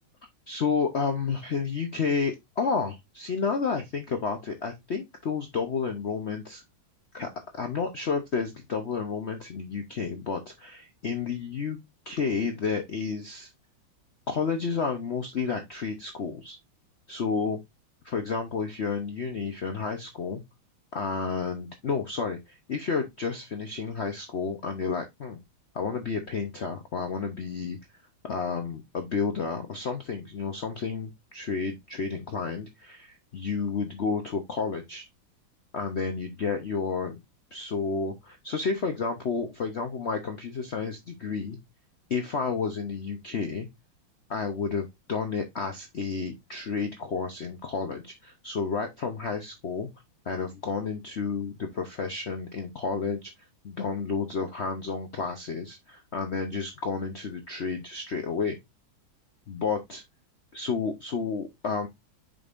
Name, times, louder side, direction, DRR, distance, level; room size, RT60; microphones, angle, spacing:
voice 1, 0.5-6.6 7.1-11.8 12.1-13.5 14.3-16.6 17.1-17.6 18.0-20.4 20.9-25.4 25.7-27.8 28.2-35.1 35.7-37.2 37.5-41.6 42.1-43.7 44.3-49.9 50.3-53.3 53.6-58.6 59.5-60.0 60.5-61.9, left 5 dB, 70° left, 0.6 m, -31 dB
7.4 x 5.3 x 2.5 m
omnidirectional pair, 2.3 m